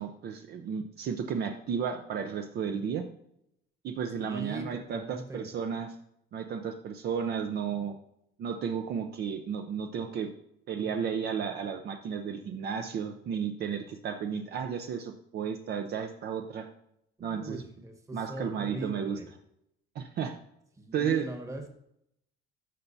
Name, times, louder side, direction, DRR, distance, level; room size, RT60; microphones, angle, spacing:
voice 1, 0.0-3.0 3.8-5.9 6.3-8.0 8.4-10.3 10.7-16.7 17.2-17.6 18.1-19.2 19.9-20.4 20.9-21.3, right 7 dB, 50° right, 5 dB, 0.7 m, -33 dB
voice 2, 4.2-5.5 17.2-19.3 20.8-21.7, right 1 dB, 15° right, 4 dB, 1.2 m, -40 dB
13.5 x 5.7 x 2.7 m, 0.77 s
cardioid pair, 165°, 21 cm